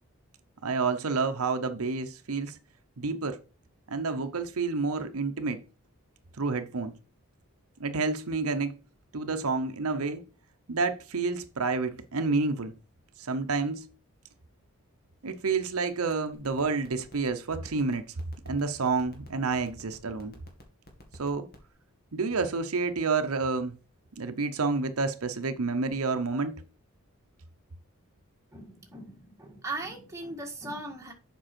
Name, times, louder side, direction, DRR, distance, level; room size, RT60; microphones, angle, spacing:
voice 1, 0.6-2.5 3.0-3.4 3.9-5.6 6.4-6.9 7.8-8.8 9.1-10.2 10.7-12.7 13.2-13.9 15.2-18.0 18.5-20.3 21.2-21.5 22.1-23.7 24.2-26.6, right 4 dB, 85° right, 0.8 m, -29 dB
sound 1, 16.4-21.7, left 1 dB, 45° left, 2.0 m, -50 dB
voice 2, 28.5-31.1, right 2 dB, 15° right, 1.7 m, -39 dB
7.7 x 5.4 x 4.4 m
head